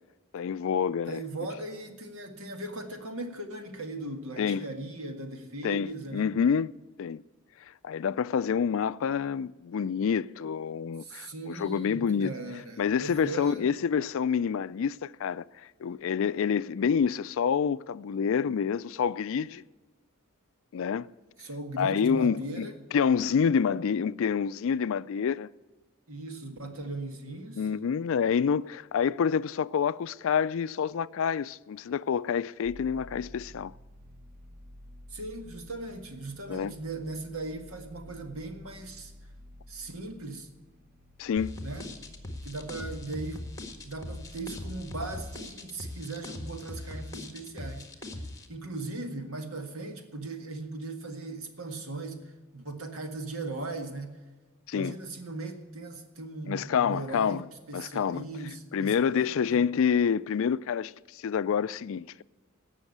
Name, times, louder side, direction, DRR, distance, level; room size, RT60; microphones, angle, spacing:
voice 1, 0.3-1.2 4.4-4.7 5.6-6.7 7.0-7.2 7.8-12.3 12.8-15.5 15.8-19.6 20.7-21.1 21.8-25.5 27.6-33.7 36.5-36.7 41.2-41.5 54.7-54.9 56.5-57.5 57.7-58.2 58.7-62.2, left 7 dB, 65° left, 0.4 m, -27 dB
voice 2, 1.1-6.3 11.0-13.6 21.4-22.8 26.1-27.7 35.1-39.1 39.7-40.5 41.6-41.9 42.4-43.4 43.8-47.9 48.5-54.2 54.7-59.6, right 2 dB, 70° right, 1.8 m, -38 dB
sound 1, 32.6-45.6, left 1 dB, 45° right, 0.9 m, -51 dB
sound 2, 41.4-48.5, left 1 dB, 15° left, 1.6 m, -40 dB
17.0 x 6.3 x 7.9 m
head